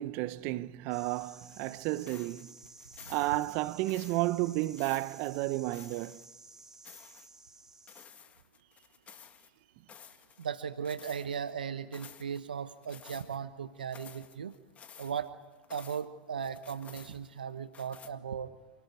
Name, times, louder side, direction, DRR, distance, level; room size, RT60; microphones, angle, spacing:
voice 1, 0.0-2.5 3.1-6.2, right 18 dB, 55° right, 0.9 m, -32 dB
sound 1, 0.9-8.1, right 3 dB, 10° right, 3.1 m, -54 dB
sound 2, 1.4-6.3 6.6-7.3 7.9-9.5 9.9-10.5 10.8-11.5 11.9-12.4 12.8-13.4 13.8-16.1 16.4-17.4 17.7-18.1, left 7 dB, 30° left, 1.9 m, -53 dB
voice 2, 10.4-14.5 15.0-15.3 15.7-18.5, right 7 dB, 85° right, 1.1 m, -37 dB
28.5 x 18.5 x 9.6 m
hypercardioid pair, 95°, 5 cm